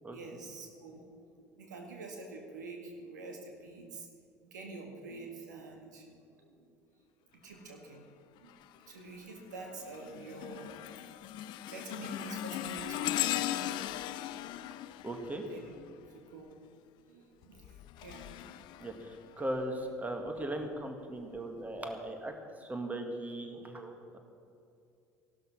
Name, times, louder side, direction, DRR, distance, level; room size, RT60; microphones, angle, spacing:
voice 1, 0.1-4.1 4.5-6.1 6.4-6.6 7.4-8.0 8.4-10.9 11.7-13.8 14.1-14.5 14.7-14.8 15.5-15.6 16.1-16.5 17.1-18.7, right 3 dB, 80° right, 2 dB, 2.0 m, -47 dB
sound 1, 8.5-8.9 9.4-16.2 17.4-19.6 20.3-20.5 21.4-21.5, left 13 dB, 55° left, 0.5 m, -38 dB
voice 2, 15.0-15.4 18.8-22.3 22.6-24.2, right 1 dB, 15° right, 4 dB, 2.2 m, -38 dB
16.5 x 12.0 x 5.9 m, 2.6 s
figure-of-eight pair, 60°, 9 cm